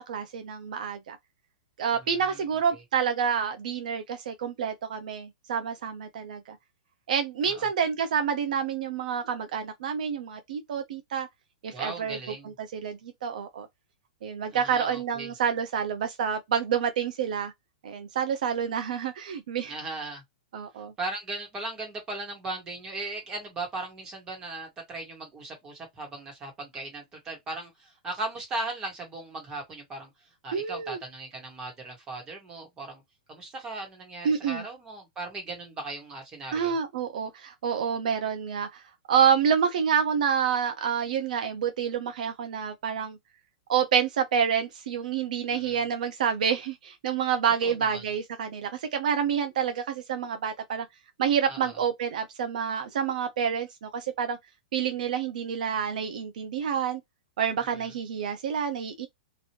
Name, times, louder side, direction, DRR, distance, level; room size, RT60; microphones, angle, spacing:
voice 1, 0.1-1.2 1.8-6.6 7.1-11.3 11.6-12.2 12.6-13.7 14.2-17.5 17.8-19.7 20.5-20.9 30.5-31.0 34.2-34.6 36.5-38.8 39.1-43.2 43.7-50.9 51.2-54.4 54.7-57.0 57.4-59.1, right 7 dB, 60° right, 0.7 m, -28 dB
voice 2, 2.0-2.4 2.7-2.8 7.4-7.7 11.7-12.5 14.5-15.3 19.7-20.2 21.0-33.0 33.3-36.7 45.5-45.8 47.6-48.0 51.5-51.8 57.6-57.9, right 2 dB, 15° right, 1.4 m, -38 dB
2.9 x 2.6 x 2.9 m
supercardioid pair, 170°, 5 cm